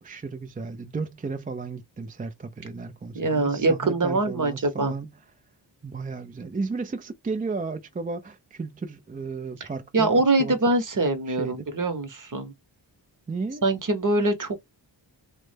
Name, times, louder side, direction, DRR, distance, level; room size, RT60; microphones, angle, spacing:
voice 1, 0.0-5.1 5.8-10.1 10.4-11.0 11.3-11.7 13.3-13.6, right 4 dB, 20° right, 0.4 m, -34 dB
voice 2, 3.1-4.9 9.9-12.5 13.6-14.6, right 2 dB, 40° right, 0.9 m, -23 dB
3.2 x 2.1 x 3.2 m
wide cardioid pair, 85°, 46 cm